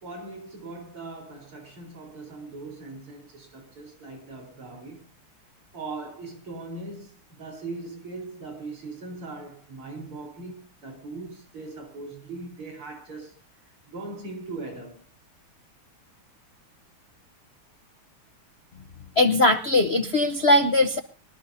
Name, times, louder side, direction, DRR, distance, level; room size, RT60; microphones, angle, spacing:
voice 1, 0.0-5.1 5.7-13.3 13.9-15.0, right 3 dB, 85° right, 5.2 m, -40 dB
voice 2, 19.2-21.0, left 2 dB, 55° left, 0.7 m, -20 dB
24.0 x 13.0 x 2.8 m
omnidirectional pair, 2.3 m